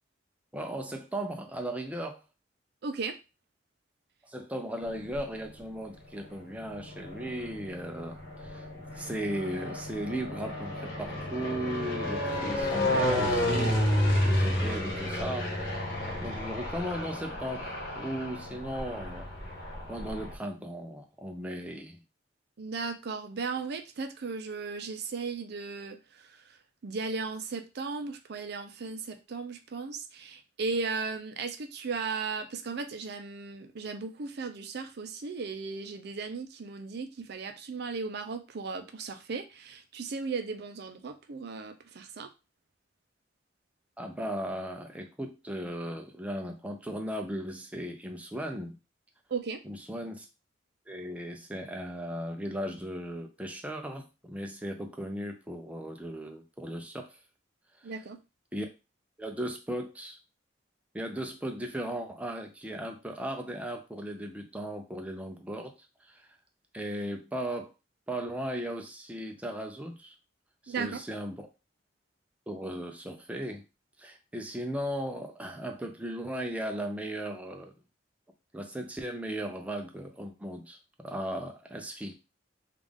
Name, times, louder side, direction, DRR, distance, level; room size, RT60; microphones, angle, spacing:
voice 1, 0.5-2.2 4.2-8.7 8.9-13.8 14.2-15.5 16.2-17.7 18.0-19.3 19.9-22.0 44.0-48.8 49.6-50.3 50.9-57.2 58.5-58.7 59.2-60.2 60.9-65.7 66.1-66.3 66.7-67.7 68.1-70.1 70.6-71.5 72.5-73.6 74.0-77.7 78.5-80.8 81.0-82.1, right 1 dB, 10° right, 3 dB, 0.4 m, -36 dB
voice 2, 2.8-3.2 22.6-42.3 49.3-49.6 57.8-58.2 70.7-71.0, right 4 dB, 60° right, 7 dB, 0.5 m, -36 dB
sound 1, 4.8-5.6 6.3-20.3, left 1 dB, 55° left, 1.3 m, -31 dB
3.5 x 2.4 x 3.5 m, 0.28 s
head